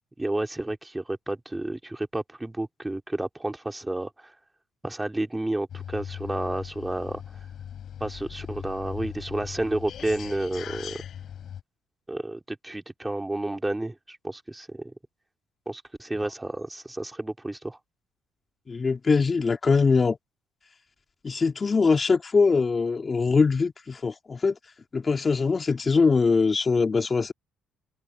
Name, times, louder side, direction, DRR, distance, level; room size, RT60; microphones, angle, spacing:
voice 1, 0.2-4.3 4.8-7.2 8.0-11.0 12.1-14.9 15.7-17.8, right 1 dB, 10° right, 3.5 m, -31 dB
sound 1, 5.7-11.6, left 9 dB, 60° left, 4.2 m, -39 dB
voice 2, 18.7-20.2 21.2-24.6 24.9-27.3, left 4 dB, 30° left, 2.5 m, -22 dB
cardioid pair, 95°, 0 cm